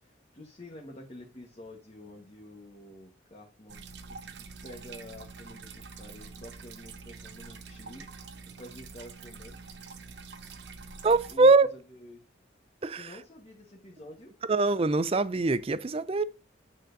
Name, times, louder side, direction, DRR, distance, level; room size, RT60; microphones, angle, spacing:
voice 1, 0.0-8.1 8.4-9.6 11.3-12.2 13.0-14.3, left 1 dB, 30° left, 1.3 m, -49 dB
sound 1, 3.7-11.3, right 4 dB, 60° right, 0.8 m, -46 dB
voice 2, 11.0-11.7 12.8-13.1 14.5-16.2, right 3 dB, 30° right, 0.4 m, -23 dB
9.1 x 4.4 x 2.6 m
head